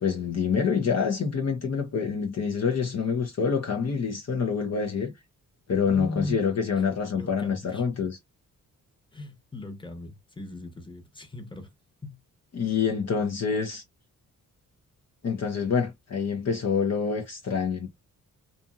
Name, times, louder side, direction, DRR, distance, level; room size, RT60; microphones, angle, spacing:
voice 1, 0.0-5.1 5.7-8.2 12.5-13.8 15.2-17.9, left 6 dB, 45° left, 0.8 m, -26 dB
voice 2, 5.8-6.4 7.1-7.9 9.1-11.7 12.0-12.2 12.6-12.7, left 1 dB, 15° left, 1.1 m, -38 dB
2.7 x 2.5 x 2.4 m
cardioid pair, 65°, 35 cm